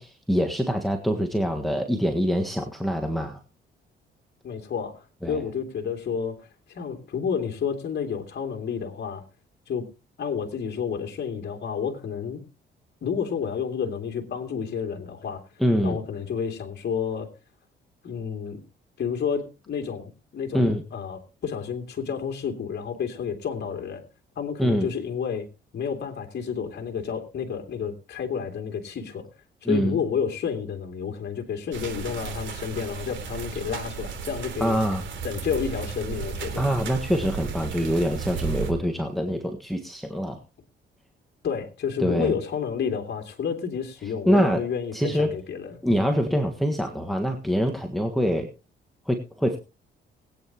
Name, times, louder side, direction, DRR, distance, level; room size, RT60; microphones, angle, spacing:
voice 1, 0.0-3.4 5.2-5.4 15.6-16.0 20.5-20.8 24.6-24.9 29.6-30.0 34.6-35.1 36.6-40.4 42.0-42.3 44.2-44.6 44.9-45.3 45.8-48.5 49.0-49.6, equal, ahead, 1.6 m, -24 dB
voice 2, 4.4-9.2 9.7-9.9 10.2-12.4 13.0-15.4 15.8-17.3 18.0-18.6 19.0-24.0 24.4-25.5 25.7-29.2 29.6-34.8 35.2-36.7 41.4-45.8, left 7 dB, 60° left, 2.7 m, -30 dB
sound 1, 31.7-38.7, right 6 dB, 70° right, 3.4 m, -34 dB
21.0 x 9.3 x 3.0 m
cardioid pair, 90°, 20 cm